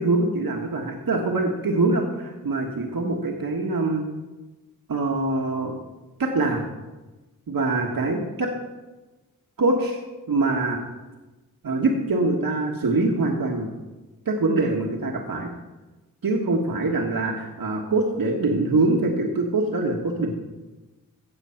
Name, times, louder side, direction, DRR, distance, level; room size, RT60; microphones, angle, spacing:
voice 1, 0.0-4.0 4.9-5.7 6.2-6.6 7.5-8.5 9.6-10.0 10.3-10.8 11.6-13.7 14.2-15.5 16.2-20.3, right 2 dB, 75° right, 1 dB, 1.5 m, -24 dB
16.0 x 7.6 x 5.8 m, 1.1 s
wide cardioid pair, 65°, 35 cm